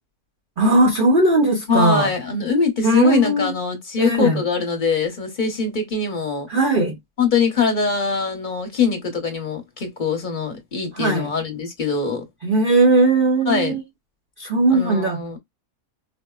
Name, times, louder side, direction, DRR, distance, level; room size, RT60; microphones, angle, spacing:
voice 1, 0.6-2.1 2.8-3.5 4.0-4.4 6.5-7.0 10.9-11.3 12.4-13.8 14.4-15.2, right 2 dB, 50° right, 0.6 m, -18 dB
voice 2, 1.7-6.5 7.2-12.2 13.5-13.7 14.7-15.4, left 5 dB, 40° left, 1.0 m, -22 dB
4.4 x 2.0 x 2.3 m
omnidirectional pair, 1.5 m